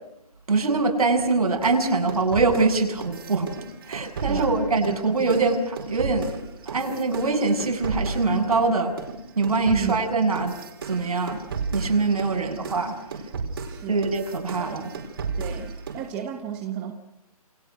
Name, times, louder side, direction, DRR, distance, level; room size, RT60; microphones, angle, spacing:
voice 1, 0.5-3.5 3.9-6.3 6.7-8.9 9.3-10.5 10.9-11.4 11.7-12.9 13.9-14.9, right 3 dB, 70° right, 5 dB, 7.7 m, -23 dB
sound 1, 1.6-8.7 9.0-16.1, right 4 dB, 35° right, 4.8 m, -34 dB
voice 2, 4.3-5.0 9.7-10.0 12.3-12.6 13.7-14.1 14.5-14.7 15.4-16.9, right 9 dB, 10° right, 5 dB, 1.1 m, -34 dB
29.0 x 26.0 x 6.4 m, 0.83 s
hypercardioid pair, 175°, 20 cm